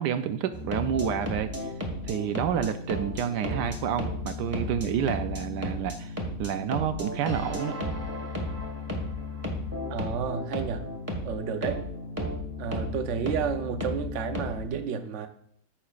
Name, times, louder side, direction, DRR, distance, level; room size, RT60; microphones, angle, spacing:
voice 1, 0.0-1.7 2.0-6.1 6.4-7.8, right 9 dB, 80° right, 8 dB, 1.2 m, -29 dB
sound 1, 0.5-14.7, left 1 dB, 10° right, 1.3 m, -34 dB
voice 2, 9.9-10.9 11.2-11.8 12.6-15.3, right 7 dB, 55° right, 7 dB, 0.9 m, -31 dB
14.5 x 5.8 x 2.4 m, 0.64 s
omnidirectional pair, 1.8 m